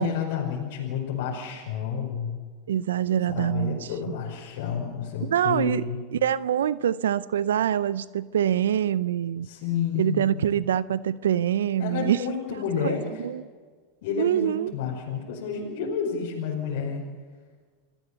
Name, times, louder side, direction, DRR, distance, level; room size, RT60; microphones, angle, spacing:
voice 1, 0.0-2.4 3.3-6.0 9.4-10.4 11.8-13.1 14.0-17.0, left 7 dB, 65° left, -2 dB, 5.5 m, -30 dB
voice 2, 2.7-3.9 5.3-5.8 6.1-9.5 10.0-12.2 12.8-13.4 14.2-14.7, right 10 dB, 80° right, 18 dB, 0.5 m, -25 dB
28.5 x 16.5 x 7.1 m, 1.6 s
hypercardioid pair, 95°, 0 cm